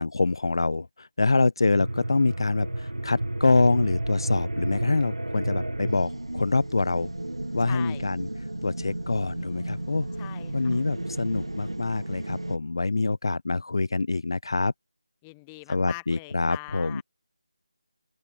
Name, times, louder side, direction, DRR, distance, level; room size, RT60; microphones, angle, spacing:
voice 1, 0.0-7.1 7.5-8.3 8.6-10.1 10.5-14.7 15.7-17.0, left 3 dB, 55° left, 0.4 m, -25 dB
sound 1, 1.7-12.6, right 1 dB, 80° right, 1.8 m, -32 dB
voice 2, 7.6-8.1 10.2-10.8 15.2-17.0, left 26 dB, 10° left, 1.1 m, -42 dB
open air
figure-of-eight pair, 160°, 3 cm